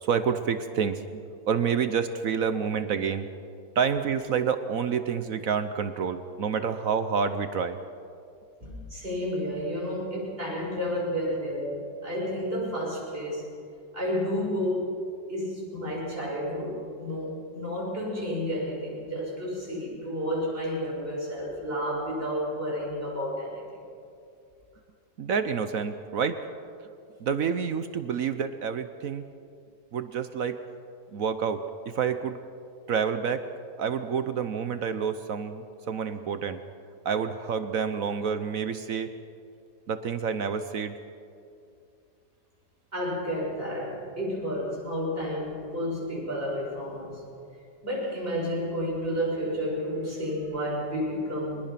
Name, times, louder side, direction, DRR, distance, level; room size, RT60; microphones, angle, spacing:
voice 1, 0.0-1.2 1.5-3.3 3.8-7.8 25.2-26.4 27.2-29.2 29.9-30.6 31.1-32.4 32.9-33.4 33.8-36.6 37.0-39.1 39.9-41.0, right 6 dB, 60° right, 10 dB, 1.1 m, -28 dB
voice 2, 8.6-13.5 13.9-14.9 15.3-23.6 42.9-47.3 47.8-51.6, equal, 30° right, -5 dB, 6.9 m, -31 dB
23.5 x 20.0 x 5.9 m, 2.5 s
omnidirectional pair, 1.9 m